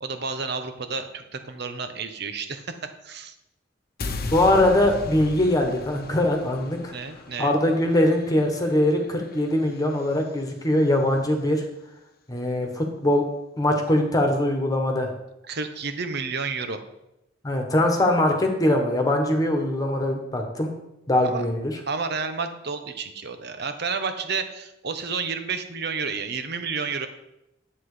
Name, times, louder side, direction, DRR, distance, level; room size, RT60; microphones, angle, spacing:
voice 1, 0.0-2.7 3.0-3.3 6.9-7.6 15.5-16.8 21.2-21.4 21.9-27.1, right 5 dB, 60° right, 8 dB, 1.0 m, -30 dB
sound 1, 4.0-10.2, left 3 dB, 55° left, 1.0 m, -37 dB
voice 2, 4.3-6.9 7.4-11.6 12.3-13.2 13.6-15.1 17.4-20.7 21.1-21.8, left 1 dB, 20° left, 3 dB, 1.4 m, -22 dB
10.5 x 7.8 x 5.1 m, 0.88 s
head